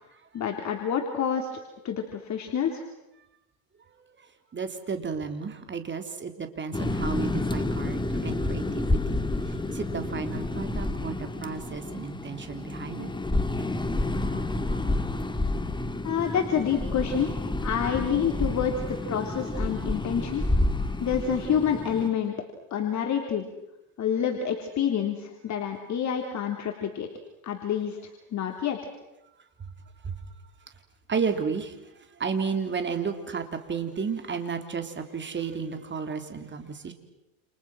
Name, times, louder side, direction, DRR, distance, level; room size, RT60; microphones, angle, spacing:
voice 1, 0.3-1.5 1.8-2.8 16.0-17.3 17.6-20.4 21.0-22.3 22.7-23.4 24.0-27.1 27.4-28.0 28.3-28.8, left 8 dB, 40° left, 3 dB, 3.4 m, -28 dB
voice 2, 4.5-9.2 9.4-13.1 14.2-14.4 14.7-15.0 20.8-20.9 29.6-29.7 30.0-30.1 31.1-36.9, right 5 dB, 25° right, 7 dB, 3.7 m, -33 dB
sound 1, 6.7-22.1, left 2 dB, 10° left, 2.1 m, -29 dB
29.5 x 29.5 x 6.3 m, 0.95 s
supercardioid pair, 105°, 43 cm